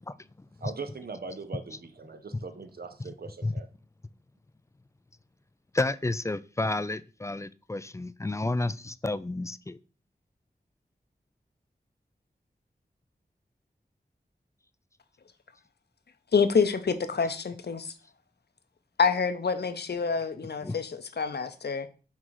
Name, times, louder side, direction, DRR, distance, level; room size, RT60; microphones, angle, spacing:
voice 1, 0.6-3.7, right 4 dB, 70° right, 0.7 m, -40 dB
voice 2, 5.7-9.8 20.6-20.8, left 2 dB, 20° left, 0.3 m, -31 dB
voice 3, 16.3-17.9 19.0-21.9, left 5 dB, 80° left, 0.7 m, -27 dB
5.6 x 3.8 x 4.7 m
wide cardioid pair, 75°, 17 cm